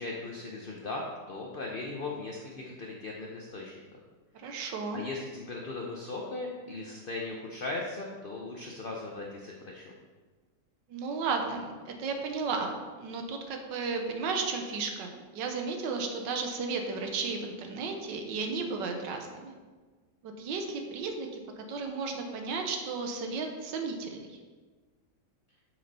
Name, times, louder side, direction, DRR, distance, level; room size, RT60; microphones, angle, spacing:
voice 1, 0.0-3.7 4.4-4.5 4.9-10.0, left 3 dB, 50° left, -1 dB, 0.6 m, -38 dB
voice 2, 4.3-5.0 10.9-19.5 20.2-21.3 21.6-24.4, right 4 dB, 85° right, 4 dB, 1.5 m, -34 dB
7.9 x 6.0 x 4.1 m, 1.4 s
omnidirectional pair, 1.9 m